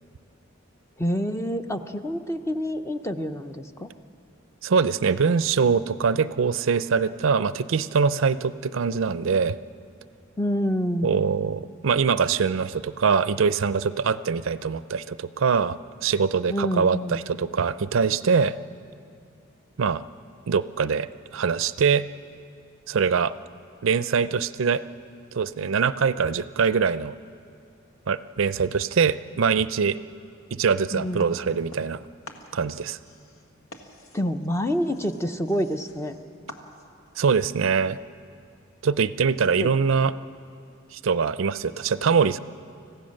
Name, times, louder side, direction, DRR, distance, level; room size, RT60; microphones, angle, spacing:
voice 1, 1.0-3.9 10.4-11.2 16.5-17.2 30.9-31.3 34.1-36.1 39.6-39.7, equal, 15° left, 8 dB, 0.6 m, -27 dB
voice 2, 4.6-9.6 11.0-15.8 16.0-18.6 19.8-20.0 20.5-22.0 22.9-23.3 23.8-24.8 25.3-27.2 28.1-30.0 30.5-32.0 32.5-33.0 37.2-38.0 38.8-40.1 40.9-42.4, right 5 dB, 65° right, 15 dB, 0.4 m, -23 dB
sound 1, 31.2-32.0 32.2-37.1, left 1 dB, 85° left, 1.7 m, -47 dB
25.5 x 15.5 x 6.5 m, 2.5 s
head